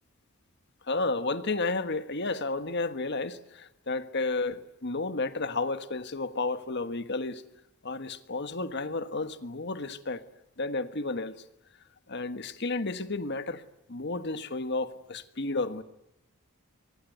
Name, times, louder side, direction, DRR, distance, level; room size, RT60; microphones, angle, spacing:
voice 1, 0.9-7.4 7.8-10.2 10.6-11.4 12.1-13.6 13.9-15.8, left 3 dB, 55° left, 1.4 m, -32 dB
24.0 x 24.0 x 9.3 m
head